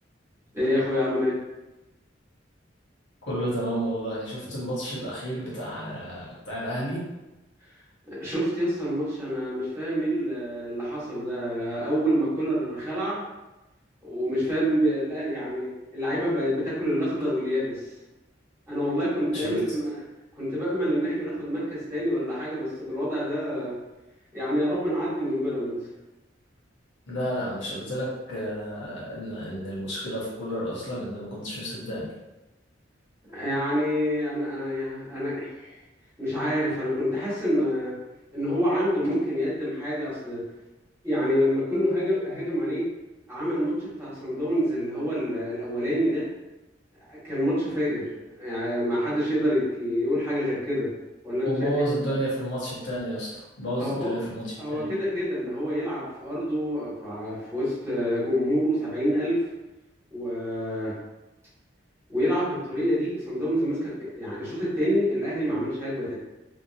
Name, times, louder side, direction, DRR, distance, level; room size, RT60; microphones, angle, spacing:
voice 1, 0.5-1.3 8.1-13.2 14.0-17.8 18.7-19.9 20.4-23.7 24.3-25.8 33.3-35.7 36.2-37.9 38.3-40.4 41.0-42.8 43.3-46.3 47.1-48.0 48.4-50.9 51.2-51.9 53.8-54.1 54.6-59.4 60.1-60.9 62.1-66.1, equal, 15° right, -10 dB, 1.2 m, -27 dB
voice 2, 3.3-7.0 19.3-19.6 27.1-32.1 51.4-54.9, equal, 75° left, -6 dB, 1.2 m, -31 dB
2.8 x 2.4 x 2.7 m, 1.0 s
head